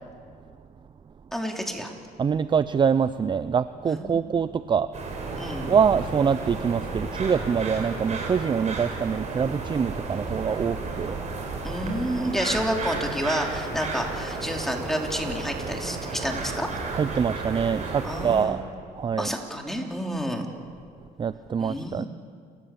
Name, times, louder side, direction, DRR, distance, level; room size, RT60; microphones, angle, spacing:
voice 1, 1.3-1.9 3.9-4.3 5.4-5.7 11.6-16.7 18.0-18.6 19.2-20.5 21.6-22.1, equal, ahead, 1 dB, 3.4 m, -29 dB
voice 2, 2.2-4.9 5.7-11.2 16.9-19.3 21.2-22.1, right 6 dB, 30° right, 14 dB, 0.5 m, -25 dB
sound 1, 4.9-18.4, right 3 dB, 45° right, 5.8 m, -33 dB
29.5 x 14.5 x 8.5 m, 2.1 s
cardioid pair, 110°, 17 cm